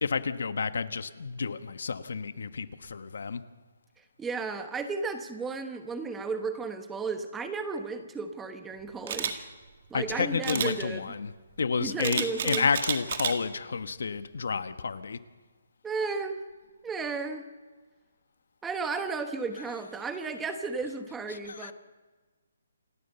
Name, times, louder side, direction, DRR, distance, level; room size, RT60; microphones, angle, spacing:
voice 1, 0.0-3.4 9.9-11.3 11.6-15.2 21.3-21.7, left 5 dB, 65° left, 11 dB, 1.2 m, -30 dB
voice 2, 4.2-9.5 9.9-11.1 11.8-12.7 15.8-16.4 16.8-17.5 18.6-21.7, right 4 dB, 5° right, 7 dB, 1.1 m, -34 dB
Camera, 9.1-9.3 10.4-10.7 12.0-13.3 13.8-14.1, right 7 dB, 40° right, 1.9 m, -30 dB
28.0 x 12.5 x 7.9 m, 1.4 s
hypercardioid pair, 170°, 0 cm